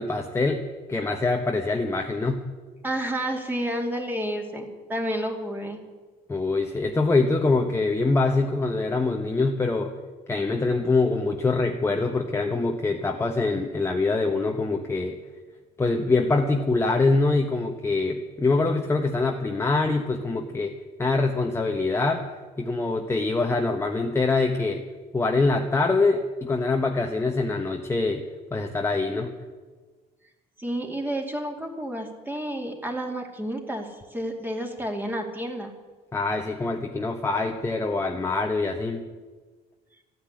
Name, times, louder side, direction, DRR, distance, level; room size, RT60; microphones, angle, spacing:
voice 1, 0.0-2.4 6.3-9.9 10.3-15.2 15.8-20.7 21.0-22.2 22.6-24.8 25.1-28.2 28.5-29.3 36.1-39.0, left 3 dB, 15° left, 3 dB, 1.2 m, -24 dB
voice 2, 2.8-5.8 30.6-35.7, right 1 dB, 10° right, 2 dB, 2.5 m, -30 dB
13.5 x 10.0 x 9.7 m, 1.4 s
cardioid pair, 110°, 17 cm